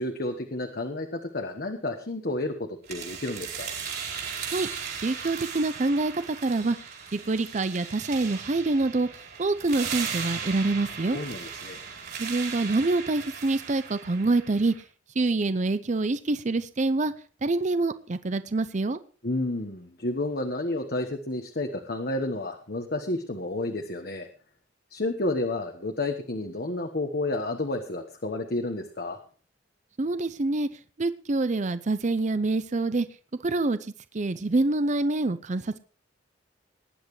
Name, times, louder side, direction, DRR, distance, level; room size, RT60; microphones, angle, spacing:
voice 1, 0.0-3.8 11.1-11.8 19.2-24.3 24.9-29.2, left 2 dB, 55° left, 5 dB, 1.3 m, -31 dB
sound 1, 2.9-14.8, right 6 dB, 55° right, 4.4 m, -37 dB
voice 2, 5.0-6.8 7.1-9.1 9.4-11.2 12.2-14.7 15.2-17.1 17.4-19.0 30.0-30.7 31.0-33.1 33.4-33.8 34.1-35.8, right 2 dB, 40° right, 12 dB, 0.6 m, -26 dB
19.0 x 10.5 x 3.2 m, 0.40 s
head